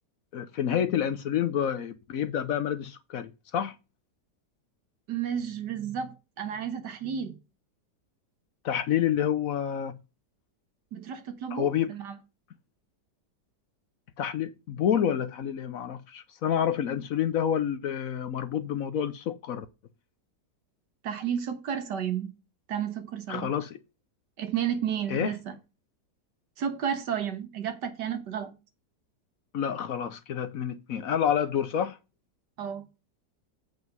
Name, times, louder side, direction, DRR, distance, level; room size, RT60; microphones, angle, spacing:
voice 1, 0.3-3.7 8.6-10.0 11.5-11.9 14.2-19.7 23.3-23.8 25.1-25.3 29.5-32.0, left 9 dB, 65° left, 1.0 m, -28 dB
voice 2, 5.1-7.4 10.9-12.1 21.0-22.3 22.7-23.5 24.4-25.6 26.6-28.5 32.6-32.8, right 8 dB, 80° right, 1.8 m, -32 dB
8.0 x 5.1 x 5.4 m
omnidirectional pair, 1.8 m